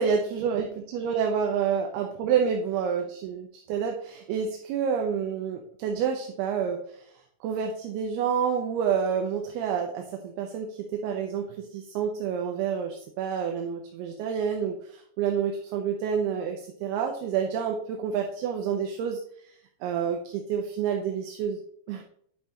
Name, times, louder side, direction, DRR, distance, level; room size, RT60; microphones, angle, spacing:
voice 1, 0.0-7.1 7.4-19.5 19.8-21.6 21.9-22.0, right 7 dB, 80° right, 3 dB, 2.6 m, -28 dB
10.0 x 5.8 x 3.2 m, 0.65 s
omnidirectional pair, 4.8 m